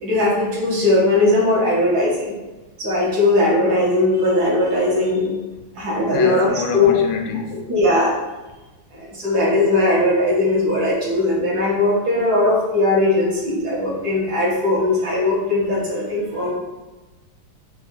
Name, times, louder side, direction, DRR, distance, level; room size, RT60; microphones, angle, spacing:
voice 1, 0.0-2.3 2.8-5.3 5.8-6.9 7.7-8.1 8.9-16.5, left 2 dB, 60° right, 1.6 m, -19 dB
voice 2, 6.1-7.5, left 4 dB, 85° left, 1.3 m, -26 dB
5.2 x 2.4 x 3.6 m
omnidirectional pair, 2.1 m